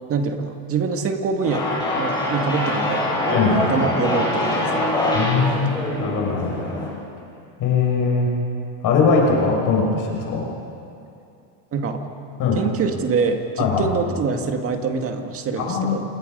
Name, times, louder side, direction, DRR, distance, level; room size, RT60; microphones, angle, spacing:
voice 1, 0.1-1.7 2.0-3.4 3.7-4.9 11.7-12.0 12.6-16.0, right 5 dB, 25° right, 5 dB, 2.0 m, -25 dB
sound 1, 1.4-6.9, left 1 dB, 10° left, 7.7 m, -24 dB
voice 2, 5.1-6.6 7.6-8.3 8.8-10.4 12.4-12.6 13.6-13.9 15.6-16.0, left 5 dB, 40° left, -1 dB, 6.2 m, -20 dB
28.5 x 28.5 x 5.4 m, 2.5 s
cardioid pair, 160°, 49 cm